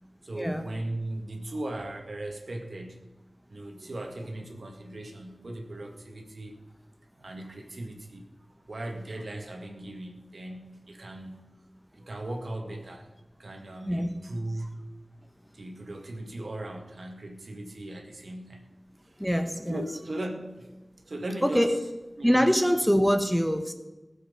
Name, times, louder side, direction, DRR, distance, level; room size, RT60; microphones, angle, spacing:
voice 1, 0.2-3.0 3.5-6.6 7.2-8.3 8.6-11.5 11.9-13.1 13.4-14.8 15.5-18.6 19.0-19.3 19.7-21.8 22.2-22.5, right 1 dB, 70° right, 3 dB, 1.8 m, -38 dB
voice 2, 19.2-19.8 21.4-21.8 22.2-23.7, equal, 5° left, 8 dB, 0.9 m, -24 dB
16.0 x 7.5 x 5.4 m, 1.1 s
wide cardioid pair, 70°, 0 cm